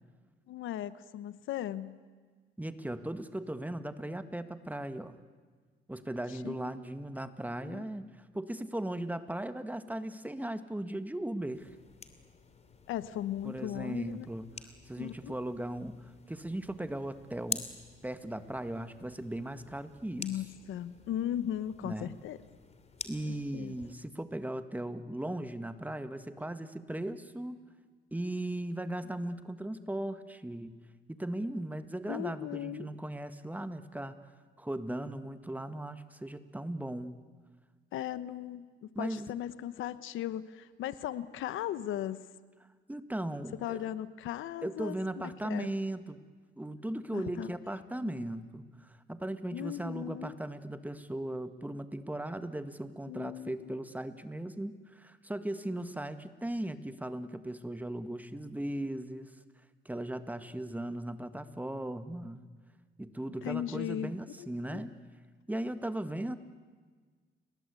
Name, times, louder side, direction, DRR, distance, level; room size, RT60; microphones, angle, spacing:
voice 1, 0.5-2.0 6.3-6.7 7.6-7.8 12.9-14.3 15.0-15.3 20.2-22.4 23.5-23.7 32.1-32.9 37.9-42.2 43.6-45.0 45.2-45.7 47.1-47.5 48.0-48.1 49.5-50.4 53.0-53.7 63.4-64.1 64.4-64.8, left 11 dB, 85° left, 15 dB, 1.0 m, -37 dB
voice 2, 2.6-5.2 5.9-11.7 13.4-14.4 14.9-17.6 18.0-20.3 21.8-22.1 23.0-27.6 28.1-30.7 31.1-34.2 34.6-37.2 39.0-39.3 42.9-43.8 44.6-46.2 46.6-59.3 59.9-62.5 63.0-64.9 65.5-66.4, right 1 dB, 10° right, 10 dB, 1.8 m, -37 dB
sound 1, 11.5-23.9, left 4 dB, 35° left, 2.7 m, -47 dB
30.0 x 22.0 x 8.4 m, 1.5 s
cardioid pair, 90°, 20 cm